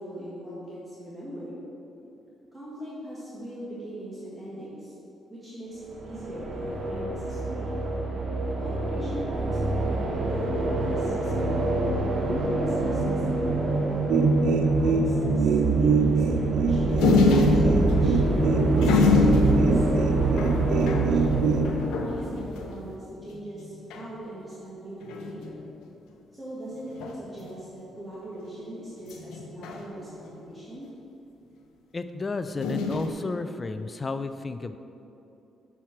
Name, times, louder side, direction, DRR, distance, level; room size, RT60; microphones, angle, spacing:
voice 1, 0.0-1.6 2.5-4.9 5.3-7.8 8.6-11.6 12.1-13.8 14.6-19.9 20.7-25.6 26.3-30.9, right 1 dB, 15° right, -9 dB, 1.7 m, -40 dB
sound 1, 5.8-22.8, right 2 dB, 60° right, 1.1 m, -27 dB
sound 2, 14.1-21.7, right 4 dB, 75° right, 0.5 m, -24 dB
sound 3, 17.0-23.0 23.3-23.4 23.6-24.1 25.0-25.6 27.0-27.5 29.1-30.4 32.6-33.1, left 4 dB, 90° left, 0.6 m, -26 dB
voice 2, 31.9-34.8, left 3 dB, 30° left, 10 dB, 0.3 m, -32 dB
5.9 x 4.5 x 5.8 m, 2.8 s
cardioid pair, 90°, 0 cm